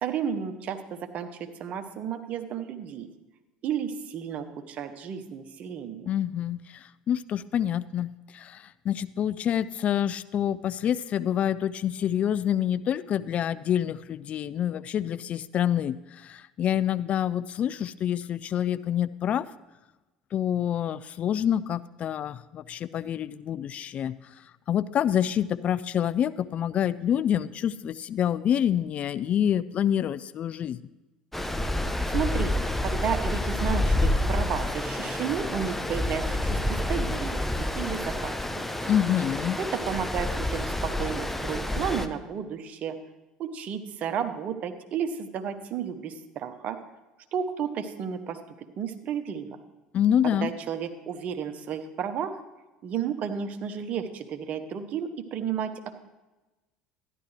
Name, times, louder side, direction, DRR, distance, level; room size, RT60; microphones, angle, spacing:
voice 1, 0.0-3.1 3.6-6.1 32.1-32.5 32.8-38.6 39.6-43.0 43.4-46.8 47.3-48.4 48.8-49.6 50.2-52.4 52.8-55.8, right 7 dB, 50° right, 7 dB, 1.0 m, -32 dB
voice 2, 6.1-19.5 20.3-24.1 24.7-30.8 38.9-39.6 49.9-50.5, left 10 dB, 45° left, 16 dB, 0.4 m, -27 dB
Stream, 31.3-42.1, left 1 dB, 5° left, 0.8 m, -28 dB
13.0 x 11.0 x 3.3 m, 1.1 s
hypercardioid pair, 70°, 3 cm